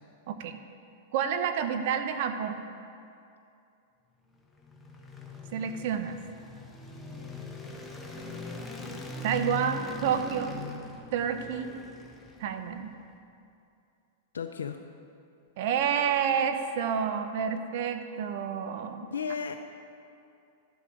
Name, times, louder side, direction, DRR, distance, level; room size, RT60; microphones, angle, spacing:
voice 1, 0.3-0.6 1.1-2.7 5.5-6.2 9.2-10.5 11.1-11.7 12.4-12.9 15.6-19.1, right 8 dB, 60° right, 8 dB, 0.8 m, -29 dB
sound 1, 4.4-12.8, left 3 dB, 5° left, 1.3 m, -41 dB
voice 2, 14.3-14.8 19.1-19.5, left 6 dB, 90° left, 5 dB, 0.5 m, -33 dB
12.0 x 7.7 x 5.1 m, 2.5 s
hypercardioid pair, 115°, 0 cm